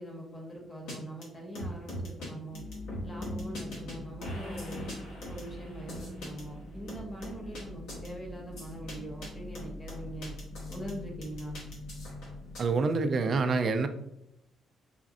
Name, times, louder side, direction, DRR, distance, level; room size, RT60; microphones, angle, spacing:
voice 1, 0.0-2.6 3.0-4.9 5.3-10.3 10.7-11.6, right 1 dB, 25° left, 0 dB, 1.0 m, -42 dB
sound 1, 0.9-1.0 1.2-1.3 1.5-2.3 2.5-3.9 4.2-6.4 6.9-7.6 7.9-8.1 8.6-8.9 9.2-9.3 9.5-10.9 11.2-12.6, equal, 85° left, 1.3 m, -41 dB
sound 2, 2.5-12.7, left 1 dB, 65° left, 1.4 m, -43 dB
voice 2, 12.6-13.9, right 4 dB, 50° right, 8 dB, 0.4 m, -26 dB
5.0 x 2.3 x 2.5 m, 0.81 s
cardioid pair, 90°, 0 cm